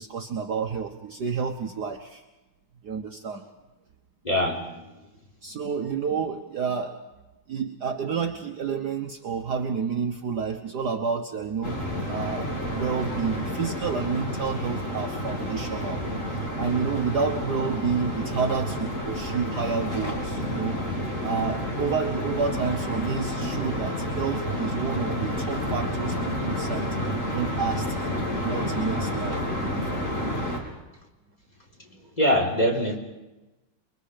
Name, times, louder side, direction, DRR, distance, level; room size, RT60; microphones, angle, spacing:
voice 1, 0.0-2.2 2.8-3.4 5.4-7.0 7.5-11.8 12.1-16.0 16.6-20.8 21.2-27.9 28.4-30.1, right 5 dB, 55° right, 4 dB, 1.5 m, -30 dB
voice 2, 4.2-4.6 32.2-33.0, equal, 20° left, -1 dB, 3.8 m, -22 dB
sound 1, 11.6-30.6, equal, 35° left, 4.1 m, -30 dB
29.0 x 22.5 x 5.1 m, 1.1 s
omnidirectional pair, 2.4 m